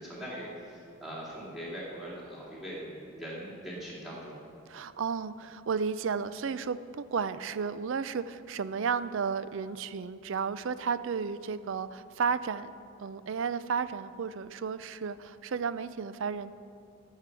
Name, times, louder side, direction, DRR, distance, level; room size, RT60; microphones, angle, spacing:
voice 1, 0.0-4.4, equal, ahead, -7 dB, 2.7 m, -41 dB
voice 2, 4.7-12.7 13.0-16.5, right 6 dB, 65° right, 14 dB, 0.4 m, -33 dB
14.5 x 6.6 x 6.1 m, 2.5 s
head